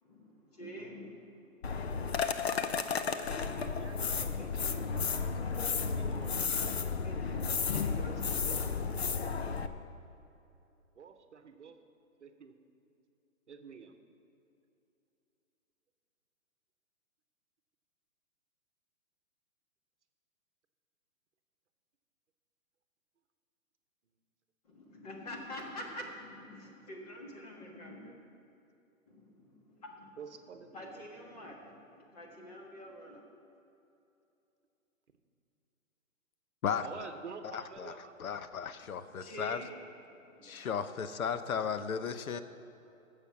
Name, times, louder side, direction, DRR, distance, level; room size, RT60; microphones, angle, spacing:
voice 1, 0.0-1.6 6.1-9.1 24.6-28.2 29.1-33.2 38.8-39.7 40.1-40.7, left 1 dB, 30° left, -1 dB, 1.6 m, -47 dB
sound 1, 1.6-9.7, left 5 dB, 50° left, 0.6 m, -33 dB
voice 2, 3.1-6.5 11.0-11.8 12.2-12.5 13.5-14.0 30.2-31.0 36.8-38.1 40.4-40.7 41.0-41.1, right 5 dB, 55° right, 8 dB, 1.0 m, -49 dB
voice 3, 37.4-39.6 40.4-42.4, left 7 dB, 85° left, 11 dB, 0.8 m, -35 dB
13.5 x 7.0 x 5.8 m, 2.8 s
hypercardioid pair, 175°, 42 cm